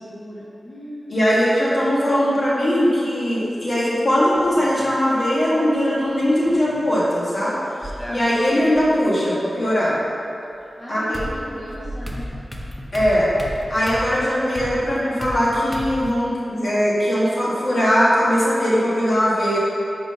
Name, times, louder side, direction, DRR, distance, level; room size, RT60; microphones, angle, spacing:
voice 1, 0.0-1.4 10.8-12.3, equal, 25° left, -10 dB, 1.3 m, -37 dB
voice 2, 1.1-7.6 8.1-9.9 10.9-11.2 12.9-13.3 13.7-19.6, equal, 45° left, -8 dB, 1.5 m, -20 dB
sound 1, 4.4-5.0 6.2-6.9 7.8-8.8 10.5-10.6 11.1-16.1, equal, 5° left, 0.6 m, -34 dB
4.7 x 3.9 x 5.6 m, 2.7 s
wide cardioid pair, 115°, 0 cm